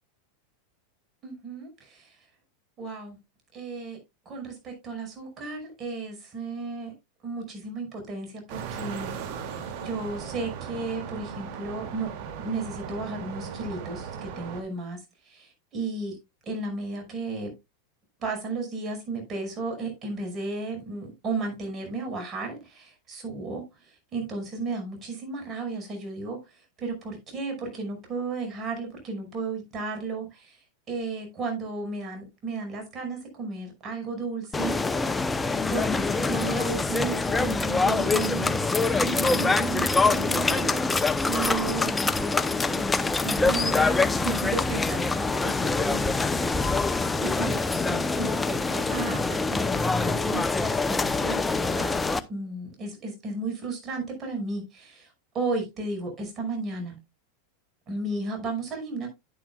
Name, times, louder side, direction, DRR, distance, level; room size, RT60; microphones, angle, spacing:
voice 1, 1.2-2.2 2.8-3.2 3.5-4.0 4.3-6.9 7.2-12.1 12.4-15.0 15.3-16.1 16.5-17.5 18.2-35.1 35.7-46.9 47.2-52.0 52.3-55.1 55.3-57.0 57.9-59.1, right 3 dB, 35° right, 5.5 m, -34 dB
sound 1, 8.5-14.6, right 7 dB, 60° right, 2.4 m, -37 dB
sound 2, 34.5-52.2, left 3 dB, 15° left, 0.7 m, -25 dB
10.0 x 10.0 x 2.3 m
hypercardioid pair, 105°, 0 cm